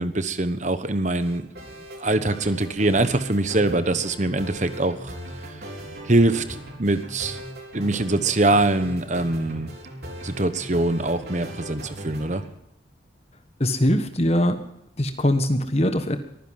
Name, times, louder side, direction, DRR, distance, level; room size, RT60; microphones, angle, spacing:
voice 1, 0.0-1.5 2.0-5.1 6.0-7.4 7.7-9.7 10.2-12.4, right 2 dB, 40° right, 11 dB, 1.1 m, -23 dB
sound 1, 1.2-12.5, equal, 55° right, 3.8 m, -38 dB
voice 2, 13.6-14.6 15.0-16.2, left 1 dB, 35° left, 8 dB, 1.4 m, -21 dB
23.0 x 10.0 x 5.8 m, 0.78 s
head